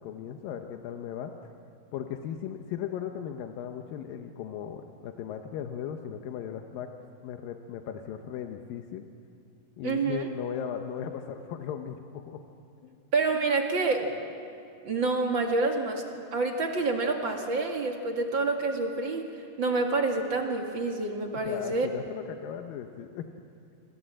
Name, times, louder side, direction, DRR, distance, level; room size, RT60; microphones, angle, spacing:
voice 1, 0.0-1.4 1.9-6.9 7.2-9.1 9.8-12.4 12.8-13.0 21.4-23.3, left 9 dB, 85° left, 5 dB, 2.7 m, -37 dB
voice 2, 9.8-10.3 13.1-14.1 14.8-16.0 16.3-19.2 19.6-21.9, right 3 dB, 40° right, 3 dB, 2.3 m, -27 dB
27.5 x 26.0 x 7.6 m, 2.5 s
omnidirectional pair, 3.9 m